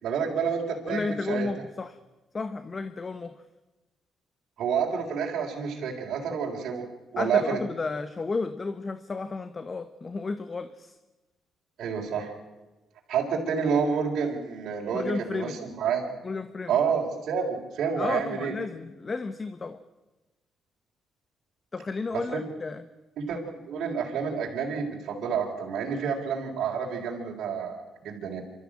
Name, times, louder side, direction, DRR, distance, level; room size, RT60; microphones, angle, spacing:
voice 1, 0.0-1.5 4.6-6.8 7.1-7.6 11.8-12.3 13.1-16.0 16.7-18.5 22.1-22.4 23.2-23.4 23.7-28.4, right 6 dB, 70° right, -2 dB, 3.9 m, -29 dB
voice 2, 0.9-2.0 2.3-3.4 7.2-11.0 14.9-15.6 16.2-16.7 18.0-19.8 21.7-22.8, left 4 dB, 35° left, 11 dB, 1.0 m, -32 dB
26.5 x 13.5 x 8.8 m, 1.1 s
cardioid pair, 90°, 0 cm